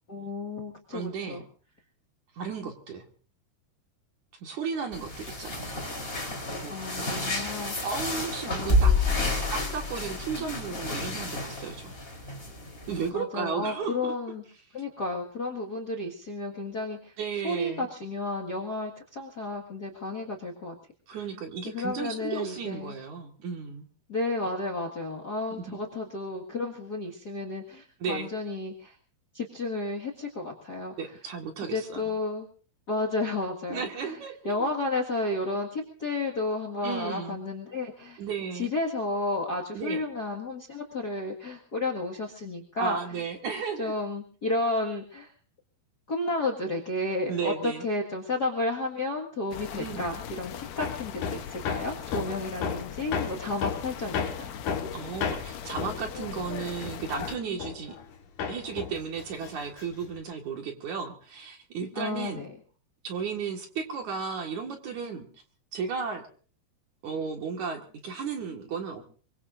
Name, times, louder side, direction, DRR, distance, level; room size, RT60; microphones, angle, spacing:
voice 1, 0.1-1.4 6.7-7.7 8.5-9.2 10.3-10.4 13.1-14.4 14.7-17.1 17.4-20.8 21.1-21.2 21.6-22.9 24.1-29.0 29.3-31.1 31.6-32.5 32.9-34.2 34.4-38.2 38.5-43.0 43.8-45.3 46.1-54.5 61.9-62.5, left 2 dB, 40° left, 0 dB, 1.5 m, -32 dB
voice 2, 0.9-1.4 2.4-3.0 4.4-5.8 6.6-6.8 7.8-8.9 9.5-12.0 12.9-14.1 17.2-17.9 21.1-23.9 25.5-25.8 28.0-28.3 31.0-32.1 33.7-34.7 36.8-37.4 38.2-38.7 39.7-40.0 42.8-43.9 47.3-47.9 49.7-50.1 54.9-58.0 58.5-62.5 63.0-65.3 65.7-66.2 67.0-69.0, right 6 dB, 55° right, 3 dB, 2.8 m, -34 dB
sound 1, 4.9-13.1, left 2 dB, 15° left, 3.5 m, -29 dB
sound 2, 49.5-57.4, left 8 dB, 75° left, 1.6 m, -40 dB
Hammer, 50.8-58.1 58.4-60.2, left 7 dB, 60° left, 2.8 m, -34 dB
24.0 x 23.0 x 2.6 m, 0.41 s
omnidirectional pair, 4.6 m